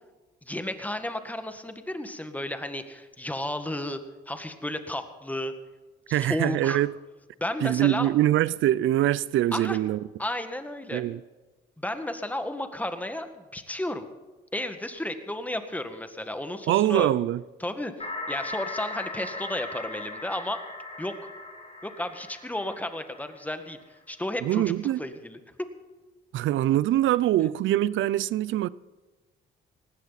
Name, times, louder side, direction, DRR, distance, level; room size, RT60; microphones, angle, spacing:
voice 1, 0.5-4.0 4.3-5.5 6.1-6.8 7.4-8.1 9.5-9.8 10.2-11.0 11.8-14.0 14.5-17.1 17.6-20.6 21.0-21.1 21.8-23.8 24.1-25.4, left 1 dB, 10° left, 1.8 m, -33 dB
voice 2, 6.1-6.9 7.6-10.0 10.9-11.2 16.7-17.4 24.4-25.1 26.3-28.7, right 13 dB, 75° right, 0.5 m, -23 dB
sound 1, 18.0-23.7, left 2 dB, 30° left, 4.2 m, -38 dB
19.5 x 16.0 x 4.2 m
cardioid pair, 90°, 20 cm